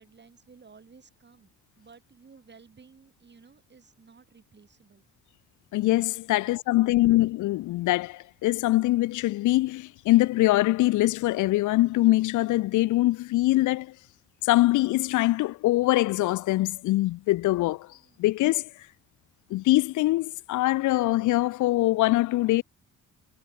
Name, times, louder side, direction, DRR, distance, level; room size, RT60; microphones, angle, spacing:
voice 1, 0.0-5.1 6.3-7.2 17.9-18.2, right 5 dB, 35° right, 7.6 m, -55 dB
voice 2, 5.7-13.9 14.4-17.9 18.2-18.7 19.5-22.6, left 17 dB, 80° left, 0.6 m, -23 dB
cardioid pair, 90°, 30 cm